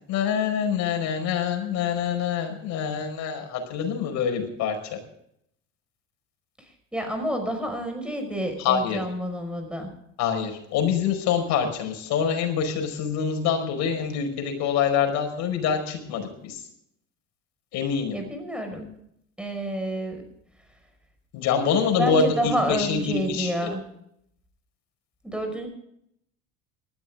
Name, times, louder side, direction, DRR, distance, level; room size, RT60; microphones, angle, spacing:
voice 1, 0.1-5.0 8.6-9.0 10.2-16.6 17.7-18.2 21.3-23.5, left 7 dB, 60° left, 4 dB, 5.1 m, -25 dB
voice 2, 6.6-9.9 18.1-18.9 19.4-20.2 22.0-23.8 25.2-25.7, right 1 dB, 5° right, 5 dB, 5.5 m, -29 dB
19.5 x 13.5 x 3.7 m, 0.71 s
supercardioid pair, 110°, 31 cm